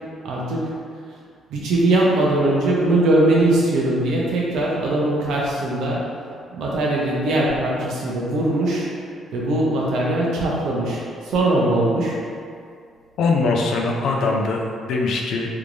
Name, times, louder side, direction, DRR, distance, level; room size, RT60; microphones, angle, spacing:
voice 1, 0.2-0.6 1.5-6.0 6.5-8.9 9.3-11.0 11.3-12.1, right 1 dB, 80° right, -4 dB, 0.8 m, -20 dB
voice 2, 13.2-15.6, left 3 dB, 75° left, 0 dB, 0.5 m, -22 dB
3.5 x 3.1 x 2.6 m, 2.2 s
cardioid pair, 90°, 0 cm